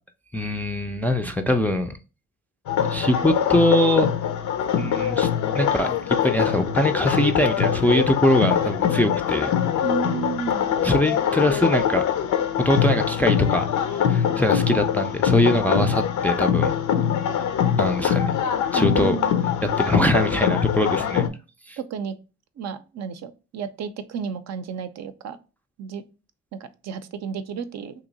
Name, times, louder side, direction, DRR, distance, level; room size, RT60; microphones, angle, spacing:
voice 1, 0.3-2.0 2.9-4.3 4.8-9.5 10.8-12.0 12.6-13.7 14.1-16.7 17.8-18.3 18.7-19.2 19.8-21.3 21.7-21.8, left 1 dB, 5° left, 0.3 m, -22 dB
sound 1, 2.7-21.3, left 9 dB, 75° left, 0.5 m, -23 dB
voice 2, 9.8-10.7 18.7-19.4 21.8-22.2 22.6-25.4 25.8-26.0 26.8-27.9, right 6 dB, 60° right, 0.5 m, -32 dB
3.0 x 2.8 x 3.9 m
cardioid pair, 90°, 30 cm